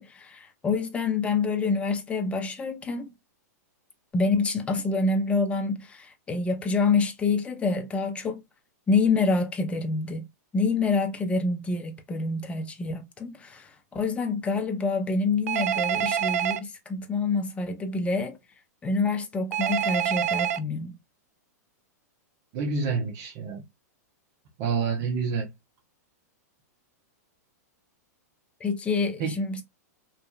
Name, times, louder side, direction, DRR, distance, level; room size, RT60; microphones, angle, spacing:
voice 1, 0.0-3.1 4.1-8.4 8.9-10.2 10.5-18.4 18.8-21.0 28.6-29.6, left 4 dB, 15° left, 0.5 m, -27 dB
Telephone, 15.5-16.6 19.5-20.6, right 9 dB, 60° right, 0.4 m, -26 dB
voice 2, 22.5-23.6 24.6-25.5 29.2-29.4, right 5 dB, 45° right, 0.8 m, -28 dB
2.6 x 2.3 x 2.3 m
hypercardioid pair, 110°, 9 cm